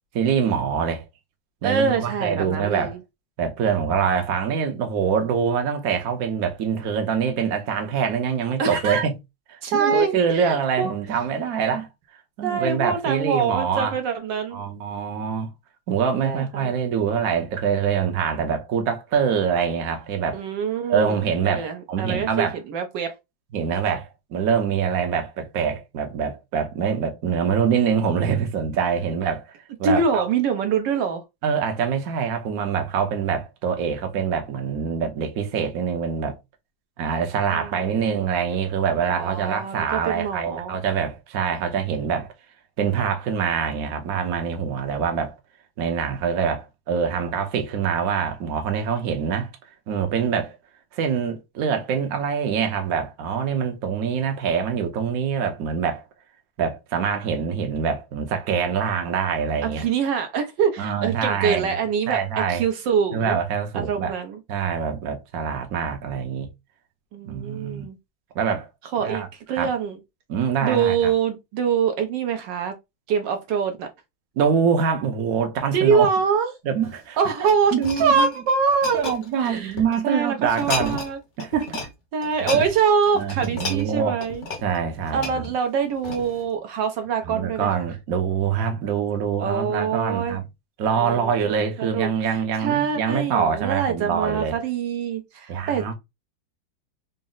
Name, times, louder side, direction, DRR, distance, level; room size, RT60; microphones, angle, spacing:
voice 1, 0.1-1.0 1.6-3.0 3.4-9.1 9.5-11.9 12.4-13.9 14.5-15.5 15.9-20.4 20.9-22.6 23.5-29.4 29.8-30.3 31.4-36.3 37.0-42.3 42.8-45.3 45.8-49.5 49.9-50.6 50.9-56.0 56.6-59.8 60.8-61.8 62.1-62.6 63.1-64.1 64.5-66.5 67.2-67.9 68.3-68.7 69.0-69.7 70.3-71.1 74.4-76.1 76.6-77.2 77.7-78.3 78.9-81.0 81.4-81.9 82.5-82.6 83.1-84.2 84.6-85.5 87.2-90.4 90.8-94.6 95.5-95.9, right 7 dB, 60° right, 1.1 m, -24 dB
voice 2, 1.6-2.9 8.6-9.1 9.6-10.9 12.4-14.6 16.2-16.7 20.3-21.2 21.4-23.1 29.8-31.2 37.5-38.2 39.1-40.8 59.6-63.4 63.7-64.4 67.1-68.0 68.9-70.0 70.6-72.7 73.1-73.9 75.7-76.5 77.2-79.1 79.4-79.8 80.0-81.2 82.1-84.4 85.1-87.9 89.4-90.4 91.0-91.3 91.8-95.9, right 6 dB, 75° right, 1.3 m, -24 dB
sound 1, 76.7-80.0 80.4-81.1 81.4-81.9 82.2-86.5 87.0-87.2, left 3 dB, 50° left, 1.0 m, -33 dB
4.1 x 2.0 x 3.7 m
omnidirectional pair, 2.0 m